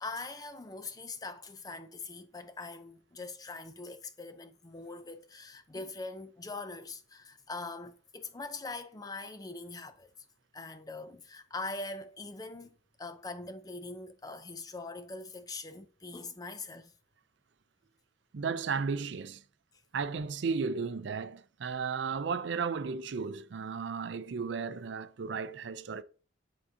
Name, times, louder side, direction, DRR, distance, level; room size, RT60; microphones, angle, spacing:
voice 1, 0.0-10.1 10.5-12.7 13.0-16.9, left 3 dB, 20° left, 0.4 m, -42 dB
voice 2, 18.3-19.4 19.9-26.0, right 5 dB, 70° right, 0.4 m, -34 dB
10.5 x 3.7 x 2.7 m
head